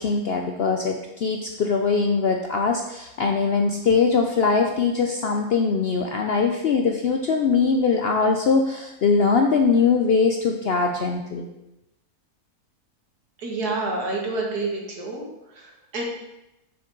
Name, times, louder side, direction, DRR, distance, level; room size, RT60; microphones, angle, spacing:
voice 1, 0.0-11.5, left 5 dB, 70° left, 3 dB, 0.6 m, -21 dB
voice 2, 13.4-15.3 15.5-16.0, right 3 dB, 90° right, -1 dB, 2.0 m, -28 dB
6.6 x 6.6 x 3.8 m, 0.92 s
omnidirectional pair, 1.6 m